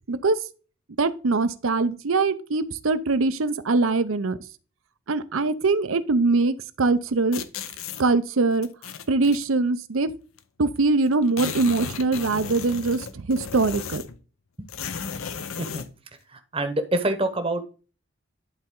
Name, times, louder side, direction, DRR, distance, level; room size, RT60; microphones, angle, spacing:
voice 1, 0.1-0.4 1.0-4.4 5.1-7.4 8.0-8.7 9.1-10.1 10.6-14.0, right 3 dB, 70° right, 0.6 m, -22 dB
sound 1, 7.3-8.0 8.6-9.4 10.4-10.5 10.7-10.8 11.1-14.2 14.7-15.9, left 6 dB, 75° left, 0.7 m, -35 dB
voice 2, 16.3-17.6, right 1 dB, 25° right, 1.0 m, -26 dB
11.0 x 4.3 x 3.7 m
head